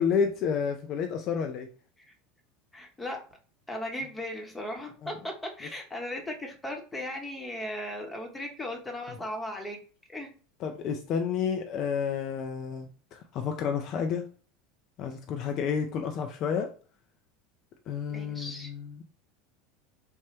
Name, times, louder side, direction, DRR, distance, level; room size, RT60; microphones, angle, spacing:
voice 1, 0.0-1.7 5.0-5.1 10.6-14.3 15.0-16.7 17.9-19.0, left 6 dB, 50° left, 4 dB, 0.4 m, -30 dB
voice 2, 2.7-3.2 3.7-9.8 10.1-10.3 18.1-18.7, left 1 dB, 10° left, 2 dB, 0.8 m, -37 dB
3.1 x 2.1 x 3.2 m, 0.39 s
hypercardioid pair, 80°, 0 cm